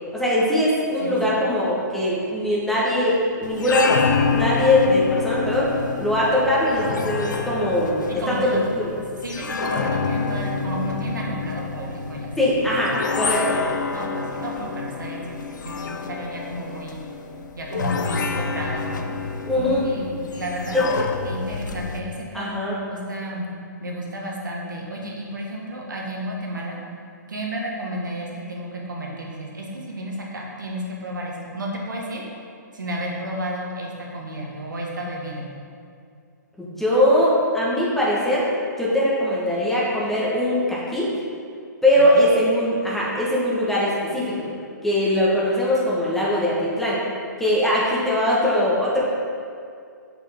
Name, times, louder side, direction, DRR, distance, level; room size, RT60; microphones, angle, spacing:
voice 1, 0.1-4.0 4.3-8.8 12.4-13.4 19.5-19.8 20.7-20.9 22.3-22.8 36.6-38.5 38.8-41.1 41.8-44.5 44.8-47.0 47.4-49.0, left 1 dB, 5° left, -7 dB, 1.4 m, -21 dB
voice 2, 1.0-1.4 8.1-8.6 9.2-12.6 13.9-17.0 17.5-19.0 19.5-21.0 21.2-22.5 22.9-23.4 23.8-26.8 27.3-32.3 32.7-35.5 42.0-42.1, right 1 dB, 85° right, -2 dB, 1.5 m, -32 dB
sound 1, 3.4-22.0, left 4 dB, 75° left, 0.5 m, -28 dB
7.3 x 5.3 x 3.6 m, 2.3 s
hypercardioid pair, 135°, 10 cm